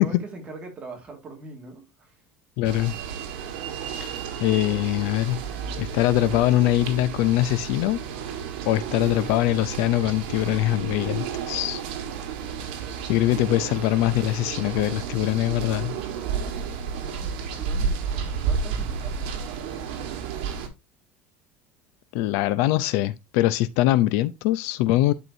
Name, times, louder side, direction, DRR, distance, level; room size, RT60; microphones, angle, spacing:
voice 1, 0.0-2.2 16.9-20.0, right 3 dB, 20° right, 2.0 m, -42 dB
voice 2, 2.6-3.0 4.0-4.1 4.4-5.4 5.8-8.0 8.7-11.8 13.1-15.9 22.1-25.1, left 15 dB, 60° left, 0.5 m, -23 dB
sound 1, 2.6-20.7, right 6 dB, 80° right, 1.6 m, -32 dB
11.0 x 4.5 x 2.7 m
cardioid pair, 170°, 5 cm